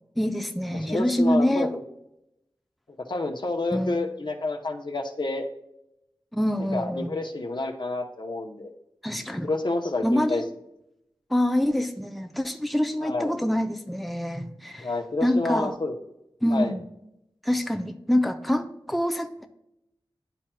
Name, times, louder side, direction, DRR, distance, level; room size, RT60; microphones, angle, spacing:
voice 1, 0.2-1.8 3.7-4.0 6.3-7.1 9.0-9.5 10.0-10.5 11.3-14.9 15.2-15.8 16.4-16.8 17.4-19.5, equal, ahead, 6 dB, 0.5 m, -25 dB
voice 2, 0.9-1.8 3.1-5.4 6.7-8.7 9.4-10.4 13.0-13.3 14.8-15.9 16.5-16.7, left 2 dB, 60° left, 5 dB, 0.8 m, -29 dB
10.0 x 4.4 x 2.3 m, 0.83 s
wide cardioid pair, 65°, 9 cm